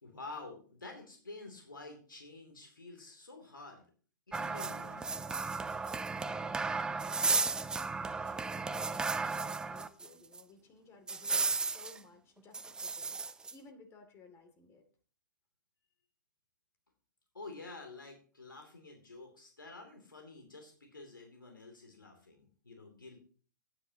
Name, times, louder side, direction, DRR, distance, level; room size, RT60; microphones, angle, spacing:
voice 1, 0.0-3.8 4.3-5.2 17.3-23.2, left 3 dB, 85° left, 3 dB, 2.8 m, -49 dB
sound 1, 4.3-10.1 10.3-10.4 11.1-12.0 12.5-13.5, right 4 dB, 5° right, 0.5 m, -34 dB
voice 2, 6.4-7.7 8.1-13.2 13.5-14.8, left 3 dB, 25° left, 6 dB, 2.5 m, -58 dB
16.0 x 9.7 x 2.9 m, 0.42 s
figure-of-eight pair, 115°, 11 cm